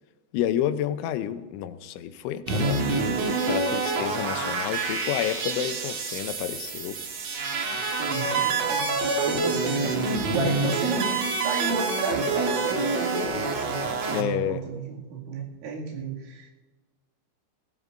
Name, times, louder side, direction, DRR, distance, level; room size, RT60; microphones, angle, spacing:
voice 1, 0.3-2.9 3.4-7.0 14.1-14.6, left 11 dB, 90° left, 10 dB, 3.2 m, -30 dB
sound 1, 2.5-14.2, right 3 dB, 55° right, 2.0 m, -27 dB
voice 2, 8.0-16.5, right 4 dB, 80° right, -2 dB, 4.8 m, -34 dB
20.5 x 17.5 x 2.6 m, 1.2 s
omnidirectional pair, 5.3 m